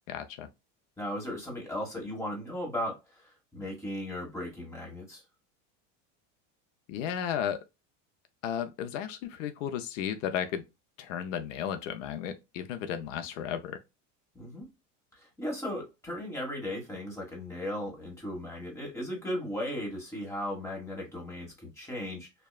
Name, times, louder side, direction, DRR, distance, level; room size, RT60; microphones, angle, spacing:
voice 1, 0.1-0.5 6.9-7.6 8.4-10.6 11.0-13.8, left 9 dB, 85° left, 0.5 m, -34 dB
voice 2, 1.0-5.2 14.3-14.7 15.1-22.3, left 1 dB, 10° left, 1.3 m, -36 dB
2.7 x 2.2 x 2.2 m
supercardioid pair, 120°, 37 cm